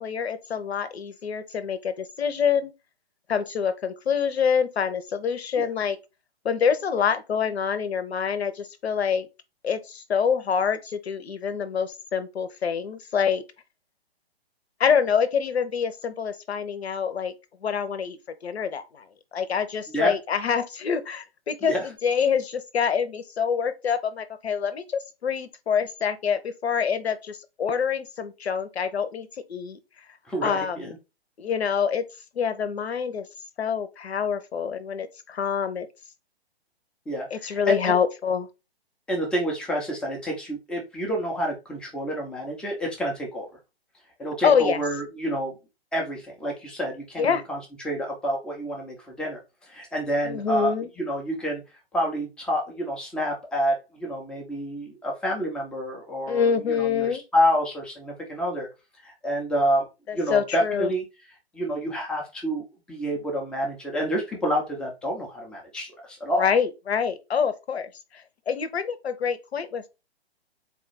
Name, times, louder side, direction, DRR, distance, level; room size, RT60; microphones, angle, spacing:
voice 1, 0.0-2.7 3.3-6.0 6.4-9.3 9.6-13.4 14.8-17.3 17.6-18.2 18.4-19.1 19.3-29.8 30.4-30.9 31.4-32.0 32.3-33.3 33.6-35.9 37.3-38.5 44.4-44.8 47.2-47.4 50.2-50.9 56.3-57.2 60.1-60.9 66.4-69.9, left 7 dB, 75° left, 0.8 m, -26 dB
voice 2, 30.3-30.9 37.1-37.9 39.1-43.5 44.2-45.5 45.9-51.6 51.9-58.7 59.0-59.9 60.1-61.0 61.5-66.5, equal, 5° left, 0.5 m, -28 dB
4.1 x 2.4 x 3.9 m
figure-of-eight pair, 130°, 32 cm